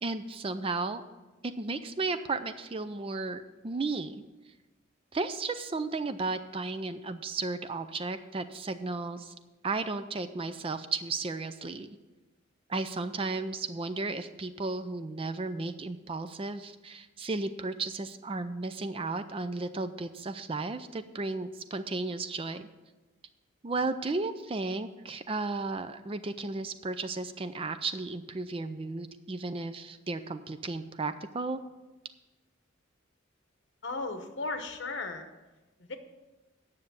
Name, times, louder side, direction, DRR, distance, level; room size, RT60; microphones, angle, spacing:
voice 1, 0.0-1.0 1.4-4.2 5.1-9.3 9.6-11.9 12.7-22.7 23.6-31.6, right 3 dB, 25° right, 11 dB, 0.4 m, -34 dB
voice 2, 33.8-35.3 35.8-36.0, left 3 dB, 60° left, 7 dB, 1.0 m, -35 dB
9.5 x 6.6 x 6.9 m, 1.1 s
head